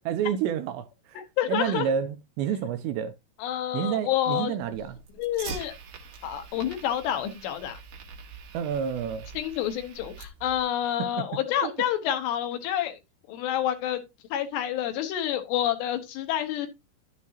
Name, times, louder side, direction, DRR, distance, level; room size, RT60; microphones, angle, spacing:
voice 1, 0.0-1.2 1.5-3.1 3.7-5.0 8.5-9.3 11.0-11.3 11.6-11.7, right 8 dB, 80° right, 2.6 m, -29 dB
voice 2, 1.2-1.9 3.4-4.6 5.2-5.7 6.2-7.8 9.4-13.0 13.3-14.0 14.3-16.7, left 11 dB, 75° left, 2.9 m, -28 dB
Fire, 4.6-10.6, right 5 dB, 60° right, 2.5 m, -44 dB
11.0 x 7.3 x 2.8 m
omnidirectional pair, 5.4 m